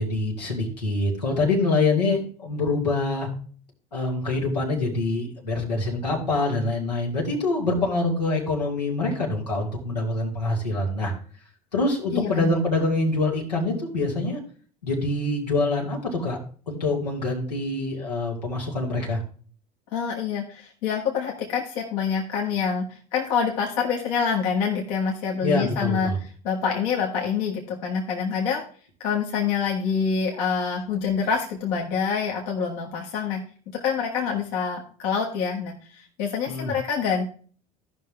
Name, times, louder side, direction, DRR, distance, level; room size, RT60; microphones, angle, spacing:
voice 1, 0.0-3.3 3.9-11.1 11.7-14.4 14.8-16.4 16.7-19.2 25.4-26.2 36.5-36.7, left 2 dB, 90° left, -2 dB, 2.3 m, -25 dB
voice 2, 12.1-12.5 19.9-22.8 23.1-26.1 26.4-28.6 29.0-33.4 33.7-37.3, left 6 dB, 65° left, -1 dB, 1.7 m, -26 dB
14.5 x 5.6 x 3.4 m, 0.43 s
hypercardioid pair, 70°, 20 cm